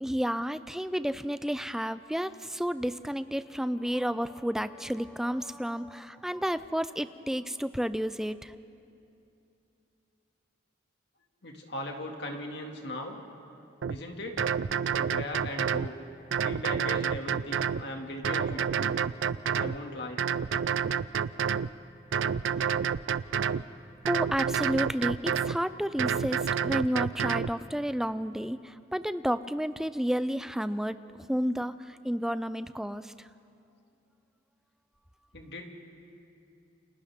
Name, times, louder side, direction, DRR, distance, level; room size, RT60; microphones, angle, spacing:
voice 1, 0.0-8.5 24.1-31.0 31.3-33.3, equal, 5° right, 13 dB, 0.4 m, -31 dB
voice 2, 11.4-13.2 13.9-14.4 15.0-15.9 16.4-19.0 19.6-20.2 35.3-35.7, left 1 dB, 60° left, 2 dB, 2.3 m, -38 dB
sound 1, 13.8-14.0 14.4-15.9 16.3-17.8 18.2-19.8 20.2-21.7 22.1-23.6 24.1-25.6 26.0-27.5, right 7 dB, 90° right, 0.4 m, -28 dB
30.0 x 27.0 x 3.6 m, 2.7 s
head